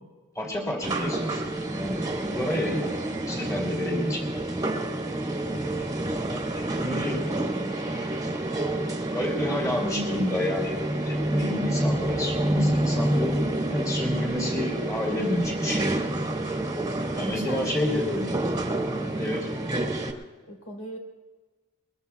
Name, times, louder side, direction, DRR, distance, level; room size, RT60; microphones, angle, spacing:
voice 1, 0.3-1.4 1.7-2.9 3.3-4.4 6.3-7.4 9.1-15.8 17.2-18.4 19.2-19.5, left 1 dB, 15° left, 0 dB, 2.8 m, -30 dB
sound 1, 0.8-20.1, right 1 dB, 20° right, 1.4 m, -28 dB
voice 2, 5.1-5.4 16.3-16.7 17.2-17.7 18.9-19.3 20.5-21.0, equal, 75° left, 1 dB, 3.8 m, -41 dB
22.0 x 21.5 x 2.4 m, 1.3 s
head